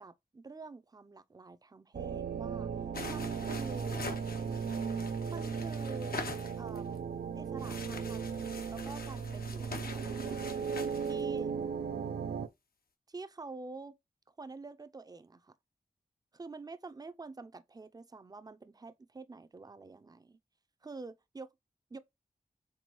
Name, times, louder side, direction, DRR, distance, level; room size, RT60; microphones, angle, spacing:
voice 1, 0.0-4.0 5.3-6.2 6.6-7.0 7.4-10.6 11.1-11.5 13.1-14.0 14.4-15.5 16.3-20.4 20.8-21.5 21.9-22.0, right 3 dB, 25° right, 0.5 m, -47 dB
sound 1, 1.9-12.5, right 6 dB, 75° right, 0.5 m, -36 dB
sound 2, 2.9-7.0 7.6-11.2, left 4 dB, 70° left, 0.8 m, -44 dB
4.5 x 3.5 x 3.0 m
cardioid pair, 50°, 16 cm